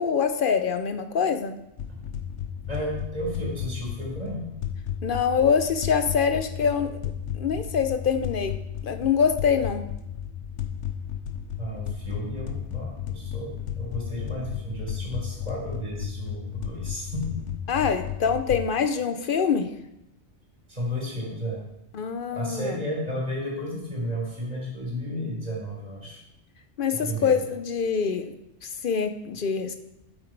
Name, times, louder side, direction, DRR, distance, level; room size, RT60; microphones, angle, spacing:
voice 1, 0.0-1.6 5.0-7.0 7.3-8.5 8.8-9.8 17.7-19.7 21.9-22.8 26.8-28.3 28.6-29.8, left 6 dB, 55° left, 9 dB, 0.7 m, -24 dB
sound 1, 1.8-18.6, left 9 dB, 80° left, 1.1 m, -34 dB
voice 2, 2.7-4.5 11.6-17.4 20.7-21.6 22.3-26.2 26.9-27.4, equal, 35° right, -4 dB, 3.7 m, -33 dB
7.7 x 7.7 x 4.6 m, 0.85 s
omnidirectional pair, 1.2 m